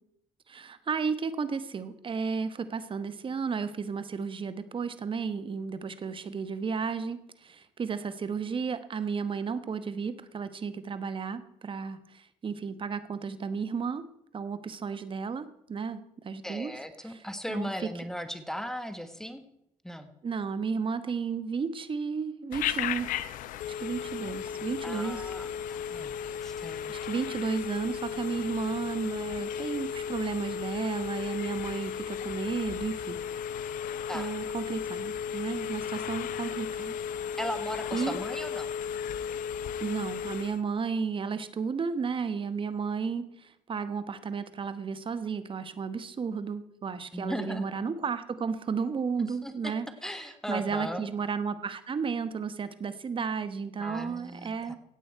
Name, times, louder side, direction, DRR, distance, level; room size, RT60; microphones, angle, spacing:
voice 1, 0.5-14.0 14.3-16.7 17.1-17.9 20.2-23.1 23.7-25.2 26.9-33.2 34.1-36.9 37.9-38.2 39.8-49.9 50.5-54.7, right 5 dB, 40° right, 12 dB, 1.1 m, -33 dB
voice 2, 16.4-19.4 19.8-20.1 24.8-26.9 34.1-34.3 37.4-38.7 47.1-47.7 49.2-49.7 50.0-51.0 53.8-54.8, equal, 5° left, 8 dB, 1.3 m, -37 dB
Telephone, 22.5-40.6, left 8 dB, 75° left, 0.7 m, -35 dB
16.0 x 8.5 x 4.6 m, 0.81 s
supercardioid pair, 80°, 14 cm